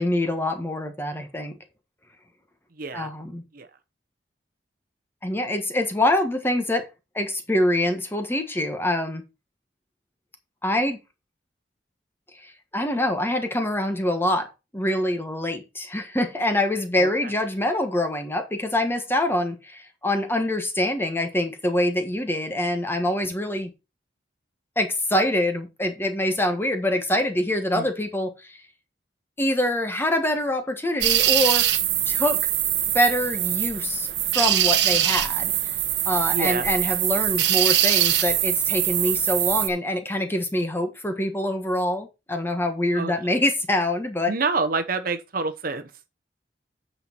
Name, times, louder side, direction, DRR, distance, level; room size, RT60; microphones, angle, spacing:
voice 1, 0.0-1.6 2.9-3.4 5.2-6.9 7.1-9.2 10.6-11.0 12.3-23.7 24.8-28.6 29.4-31.7 32.1-32.4 32.9-34.1 34.3-35.7 36.1-44.3, left 1 dB, 15° left, 1.4 m, -25 dB
voice 2, 2.8-3.1 3.5-3.7 17.0-17.1 27.7-27.9 36.3-36.7 42.9-43.1 44.3-45.9, right 4 dB, 55° right, 0.9 m, -27 dB
sound 1, 31.0-39.7, right 13 dB, 75° right, 1.0 m, -22 dB
8.9 x 5.7 x 4.4 m
head